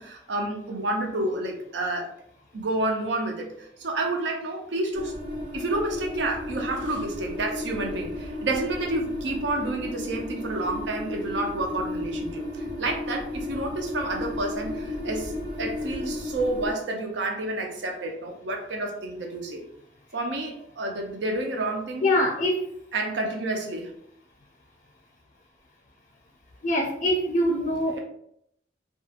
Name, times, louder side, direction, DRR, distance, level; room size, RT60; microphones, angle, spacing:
voice 1, 0.0-2.1 2.5-5.1 5.5-19.6 20.1-22.1 22.9-23.9 27.9-28.0, right 2 dB, 85° right, 2 dB, 0.6 m, -30 dB
sound 1, 4.9-16.7, left 1 dB, 70° right, 1.0 m, -34 dB
voice 2, 22.0-22.6 26.6-28.0, left 1 dB, 45° left, -1 dB, 0.4 m, -23 dB
2.7 x 2.3 x 2.4 m, 0.72 s
head